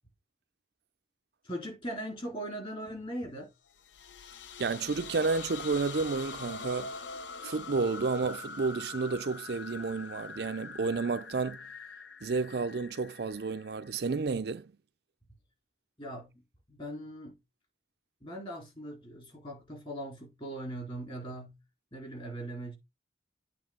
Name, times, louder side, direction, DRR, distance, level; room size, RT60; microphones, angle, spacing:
voice 1, 1.4-3.5 16.0-16.3 16.7-17.4 18.2-21.6 21.9-22.7, right 1 dB, 30° left, 3.9 m, -40 dB
sound 1, 3.7-14.3, left 4 dB, 75° left, 0.8 m, -44 dB
voice 2, 4.6-7.0 7.4-11.7 12.2-14.7, right 4 dB, 60° right, 0.5 m, -31 dB
8.7 x 3.2 x 6.6 m
head